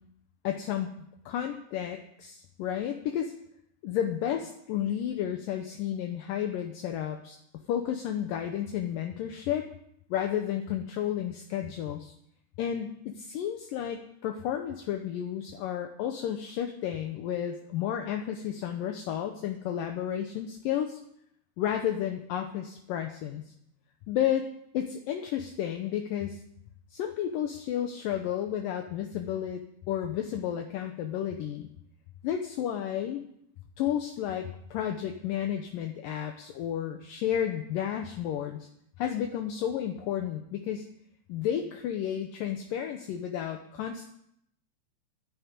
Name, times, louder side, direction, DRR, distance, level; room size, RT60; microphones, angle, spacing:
voice 1, 0.4-0.9 1.3-3.3 3.8-7.4 7.7-9.7 10.1-12.1 12.6-21.0 21.6-23.4 24.1-24.5 24.7-26.4 26.9-29.6 29.9-31.7 32.2-33.2 33.8-38.7 39.0-40.9 41.3-44.1, left 10 dB, 75° left, 5 dB, 2.1 m, -32 dB
12.0 x 10.5 x 8.2 m, 0.73 s
omnidirectional pair, 5.0 m